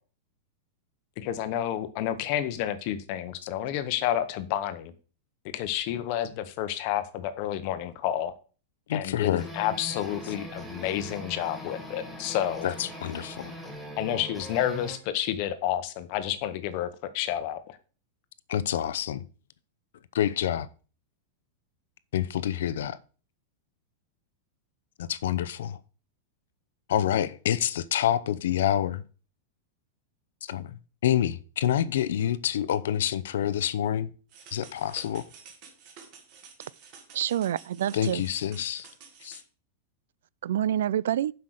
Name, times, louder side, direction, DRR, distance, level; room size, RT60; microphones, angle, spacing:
voice 1, 1.2-4.9 5.5-8.3 8.9-12.7 14.0-17.8, left 11 dB, 35° left, 0.9 m, -30 dB
voice 2, 8.9-9.4 12.6-13.5 18.5-19.2 20.1-20.7 22.1-23.0 25.0-25.8 26.9-29.0 30.5-34.1 34.5-35.3 37.9-38.9 39.2-39.4, left 10 dB, 70° left, 0.7 m, -27 dB
sound 1, 9.4-15.0, left 1 dB, ahead, 1.3 m, -41 dB
sound 2, 34.3-39.4, right 6 dB, 30° right, 1.9 m, -50 dB
voice 3, 37.1-38.2 40.4-41.3, right 11 dB, 75° right, 0.3 m, -27 dB
7.6 x 5.6 x 6.4 m
supercardioid pair, 180°, 0 cm